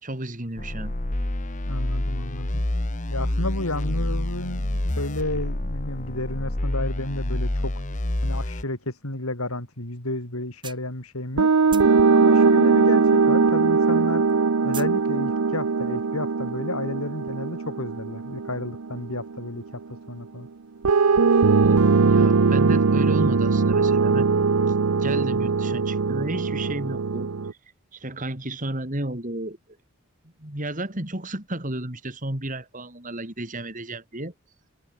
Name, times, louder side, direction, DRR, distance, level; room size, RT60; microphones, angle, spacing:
voice 1, 0.0-1.0 21.6-21.8 22.1-24.3 24.7-27.3 27.9-29.6 30.4-34.3, right 1 dB, 35° right, 3.4 m, -32 dB
sound 1, 0.6-8.6, left 1 dB, 35° left, 1.4 m, -27 dB
voice 2, 1.7-2.6 3.1-7.7 8.2-11.5 12.1-14.3 14.6-19.6 19.9-20.5 22.0-22.3, left 2 dB, 80° left, 5.5 m, -32 dB
sound 2, 9.8-9.9 10.3-11.4 11.7-13.6 13.8-15.0, right 7 dB, 20° right, 5.3 m, -40 dB
sound 3, 11.4-19.5 20.8-27.5, right 4 dB, 85° right, 0.7 m, -20 dB
head